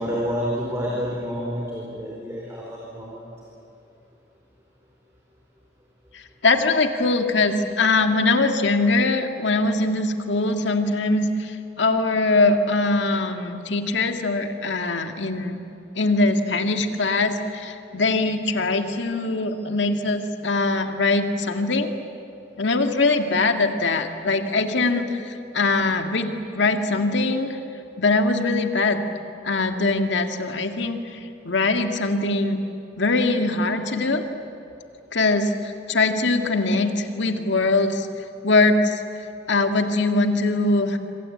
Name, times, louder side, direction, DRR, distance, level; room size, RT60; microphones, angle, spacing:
voice 1, 0.0-3.3, equal, 15° right, -4 dB, 4.6 m, -29 dB
voice 2, 6.1-15.6 16.0-21.9 22.6-27.6 28.0-29.0 29.4-31.2 31.4-32.6 33.0-34.2 35.1-38.1 38.4-39.0 39.5-41.0, left 3 dB, 75° left, 5 dB, 2.0 m, -22 dB
27.0 x 25.0 x 8.7 m, 2.7 s
head